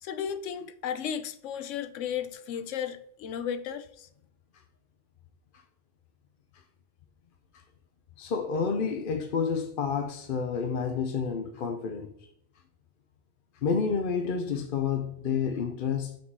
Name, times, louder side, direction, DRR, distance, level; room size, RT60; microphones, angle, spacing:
voice 1, 0.0-4.1, left 8 dB, 85° left, 1.0 m, -34 dB
voice 2, 8.2-12.1 13.6-16.2, left 6 dB, 55° left, 0.7 m, -29 dB
6.1 x 3.8 x 4.7 m
omnidirectional pair, 1.2 m